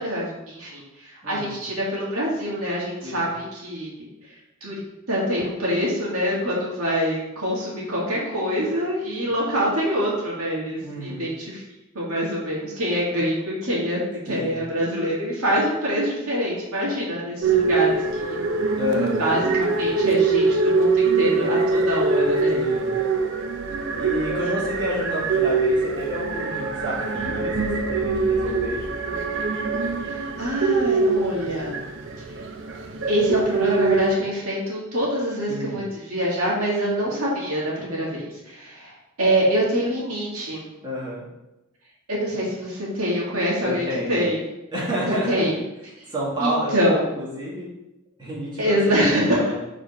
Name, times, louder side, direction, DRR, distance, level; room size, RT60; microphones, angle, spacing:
voice 1, 0.0-3.9 4.6-4.8 5.1-11.6 11.9-18.4 19.2-22.6 24.4-24.5 30.0-31.7 33.1-38.9 39.2-40.6 42.1-44.4 45.1-45.6 46.4-47.1 48.6-49.4, equal, 75° right, -5 dB, 2.1 m, -25 dB
voice 2, 1.2-1.6 3.0-3.3 10.8-11.3 14.3-14.6 18.7-19.2 22.5-22.9 23.9-28.8 35.5-35.8 40.8-41.2 43.6-44.2 44.7-45.5 46.1-46.9 47.1-47.7 48.2-49.5, equal, 20° right, -7 dB, 1.8 m, -30 dB
sound 1, 17.4-34.2, right 4 dB, 55° right, 0.6 m, -23 dB
4.9 x 4.1 x 5.4 m, 0.95 s
head